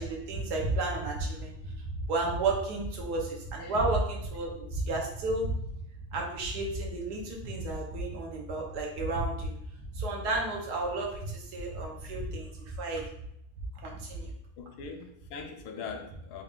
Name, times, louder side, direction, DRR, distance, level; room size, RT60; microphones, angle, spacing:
voice 1, 0.0-1.5 2.1-5.6 6.1-9.5 9.9-13.0 13.8-14.3, right 2 dB, 85° right, -1 dB, 1.5 m, -32 dB
voice 2, 14.6-16.4, left 5 dB, 80° left, 4 dB, 1.2 m, -41 dB
3.8 x 2.4 x 3.6 m, 0.74 s
omnidirectional pair, 1.7 m